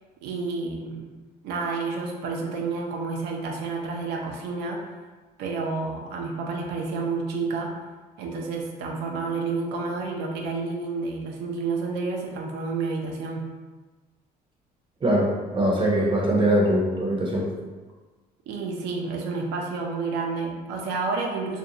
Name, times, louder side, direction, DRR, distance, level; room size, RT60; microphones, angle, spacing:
voice 1, 0.2-1.1 1.4-4.9 5.4-7.7 8.2-13.5 18.5-21.6, right 4 dB, 80° right, 1 dB, 0.4 m, -30 dB
voice 2, 15.0-17.5, right 1 dB, 30° right, -2 dB, 0.6 m, -22 dB
2.5 x 2.2 x 2.7 m, 1.3 s
cardioid pair, 110°, 17 cm